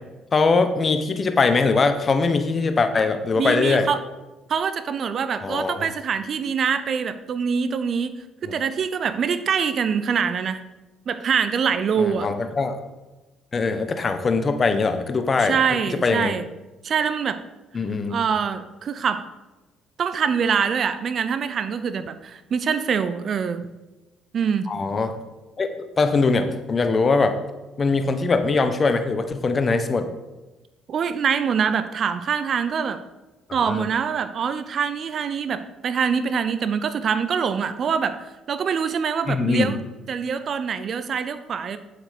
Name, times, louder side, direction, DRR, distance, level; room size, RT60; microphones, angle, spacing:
voice 1, 0.3-3.9 5.4-5.9 12.0-12.8 13.5-15.6 16.0-16.3 17.7-18.2 24.7-25.2 25.6-27.4 27.8-30.1 33.7-33.8 39.3-39.7, left 4 dB, 40° left, 8 dB, 1.2 m, -21 dB
voice 2, 3.4-4.0 4.5-10.6 11.1-12.3 15.4-16.4 16.8-17.4 18.1-19.2 20.0-23.6 24.3-24.7 30.9-33.0 33.5-39.8 40.1-41.8, right 6 dB, 50° right, 11 dB, 0.7 m, -24 dB
8.8 x 7.8 x 5.1 m, 1.1 s
hypercardioid pair, 50°, 0 cm